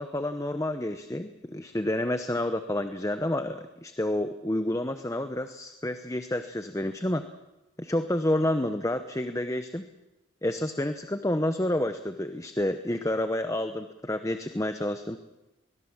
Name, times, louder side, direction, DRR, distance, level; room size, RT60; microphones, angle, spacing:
voice 1, 0.0-7.2 7.8-9.8 10.4-15.2, left 1 dB, 15° left, 9 dB, 0.8 m, -29 dB
23.5 x 20.5 x 7.3 m, 0.99 s
head